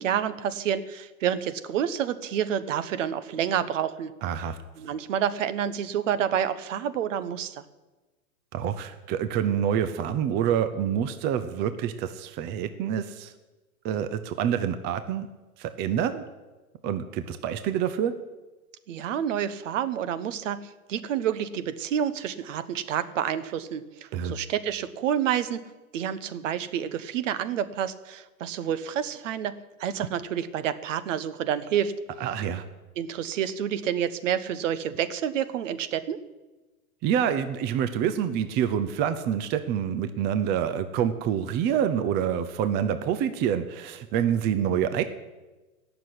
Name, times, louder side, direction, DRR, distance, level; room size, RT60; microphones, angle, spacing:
voice 1, 0.0-4.1 4.8-7.6 18.9-25.6 25.9-31.9 33.0-36.2, right 9 dB, 55° right, 13 dB, 1.2 m, -29 dB
voice 2, 4.2-4.6 8.5-13.3 13.8-15.3 15.6-16.2 16.8-18.1 24.1-24.3 32.2-32.6 37.0-45.0, right 9 dB, 25° right, 10 dB, 0.7 m, -27 dB
18.0 x 6.9 x 9.9 m, 1.2 s
hypercardioid pair, 130°, 44 cm